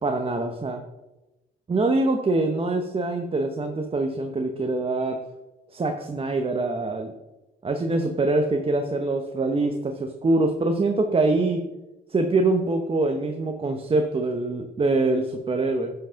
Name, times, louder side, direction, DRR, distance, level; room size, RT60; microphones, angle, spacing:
voice 1, 0.0-0.8 1.7-5.2 5.7-7.1 7.6-11.6 12.1-15.9, right 2 dB, 30° right, 5 dB, 0.9 m, -24 dB
10.5 x 5.9 x 5.6 m, 1.1 s
cardioid pair, 90°, 20 cm